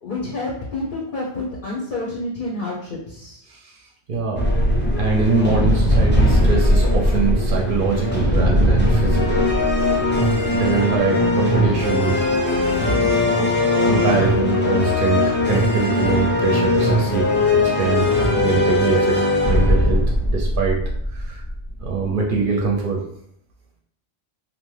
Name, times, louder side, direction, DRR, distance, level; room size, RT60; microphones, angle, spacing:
voice 1, 0.0-3.4, left 2 dB, 55° left, -4 dB, 0.7 m, -29 dB
voice 2, 4.1-4.4 5.0-9.4 10.5-12.2 13.8-18.1 18.4-19.2 19.5-20.8 21.1-21.4 21.8-23.0, right 4 dB, 60° right, -1 dB, 0.6 m, -23 dB
sound 1, 4.3-22.0, left 1 dB, 15° left, 0.4 m, -19 dB
2.8 x 2.1 x 3.1 m, 0.69 s
omnidirectional pair, 1.1 m